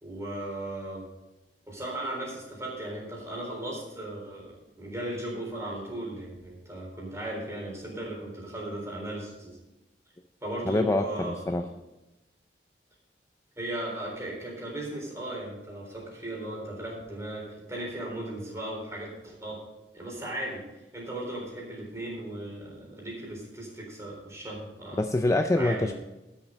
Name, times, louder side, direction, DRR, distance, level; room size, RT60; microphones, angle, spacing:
voice 1, 0.0-1.0 1.7-9.6 10.4-11.7 13.6-19.6 19.9-20.6 20.9-25.1 25.6-25.9, right 1 dB, 15° right, -3 dB, 3.9 m, -37 dB
voice 2, 10.7-11.6 25.0-25.9, left 2 dB, 15° left, 7 dB, 0.4 m, -25 dB
12.5 x 7.4 x 5.2 m, 1.0 s
head